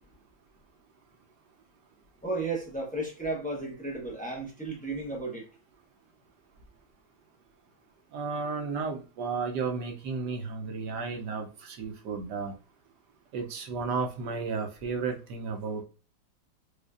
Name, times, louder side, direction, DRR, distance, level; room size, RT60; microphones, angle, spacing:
voice 1, 2.2-5.4, right 2 dB, 10° left, 0.4 m, -34 dB
voice 2, 8.1-12.5 13.3-15.8, right 4 dB, 65° right, 1.2 m, -33 dB
4.9 x 2.3 x 2.5 m
omnidirectional pair, 2.2 m